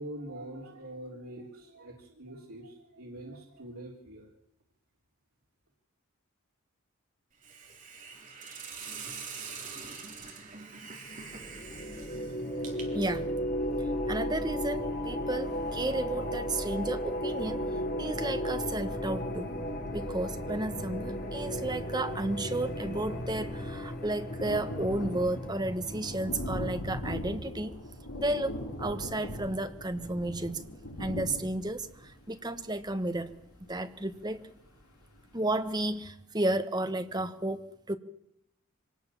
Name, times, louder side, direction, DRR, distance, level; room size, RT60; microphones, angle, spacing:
voice 1, 0.0-4.3, right 1 dB, 80° right, -2 dB, 3.5 m, -44 dB
Hiss, 7.4-13.2, right 5 dB, 35° right, 3.8 m, -44 dB
sound 1, 11.2-26.6, equal, 40° left, 3.2 m, -35 dB
voice 2, 12.9-13.3 14.1-17.6 18.0-19.5 19.9-27.7 28.1-30.6 31.0-33.3 33.7-34.4 35.3-38.0, right 1 dB, 20° right, 10 dB, 1.2 m, -32 dB
Thunder, 21.9-22.0 22.2-34.8 35.3-35.4 35.7-35.8, equal, 85° left, 5.8 m, -41 dB
24.5 x 19.0 x 7.2 m, 0.78 s
head